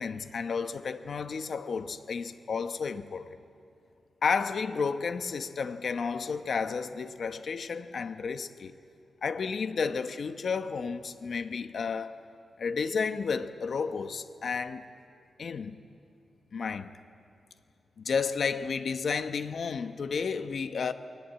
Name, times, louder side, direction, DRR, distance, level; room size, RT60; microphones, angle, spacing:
voice 1, 0.0-3.4 4.2-8.7 9.2-12.2 12.6-14.9 15.4-15.8 16.5-16.9 18.0-20.9, left 5 dB, 60° left, 1.0 m, -32 dB
30.0 x 22.5 x 8.7 m
wide cardioid pair, 105°, 0 cm